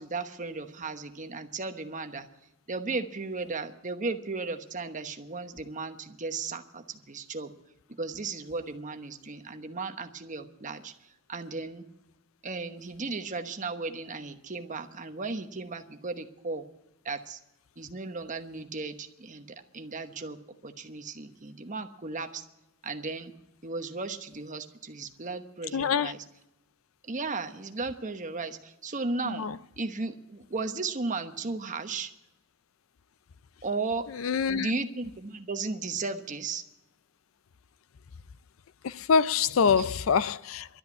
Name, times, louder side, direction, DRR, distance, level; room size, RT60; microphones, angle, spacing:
voice 1, 0.0-2.3 2.7-7.5 8.0-10.9 11.3-11.8 12.4-16.6 17.0-17.4 17.8-19.5 19.7-20.4 20.6-22.4 22.8-23.3 23.6-26.2 27.1-29.5 29.8-32.1 33.6-34.1 34.5-36.6 39.8-39.9, right 3 dB, 40° right, 1.1 m, -35 dB
voice 2, 25.7-26.1 29.2-29.5 34.2-34.7 38.8-40.7, left 6 dB, 75° left, 0.4 m, -25 dB
12.5 x 8.7 x 9.6 m
head